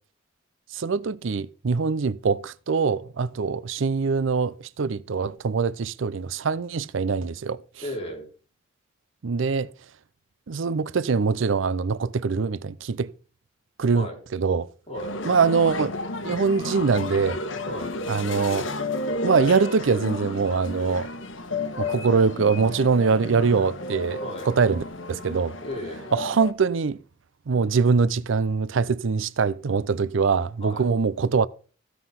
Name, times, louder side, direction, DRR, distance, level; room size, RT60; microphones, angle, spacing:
voice 1, 0.7-7.6 9.2-9.7 10.5-13.1 13.8-14.7 15.2-15.9 16.2-17.4 18.1-18.7 19.2-21.1 21.8-24.2 24.5-25.6 26.1-27.0 27.5-31.5, right 5 dB, 70° right, 0.5 m, -23 dB
voice 2, 7.8-8.3 13.9-14.2 14.9-15.1 17.7-18.0 24.2-24.5 25.6-26.1 30.6-30.9, left 1 dB, 30° left, 4.1 m, -35 dB
sound 1, 14.9-26.5, left 2 dB, 70° left, 1.3 m, -32 dB
15.0 x 5.7 x 5.8 m
head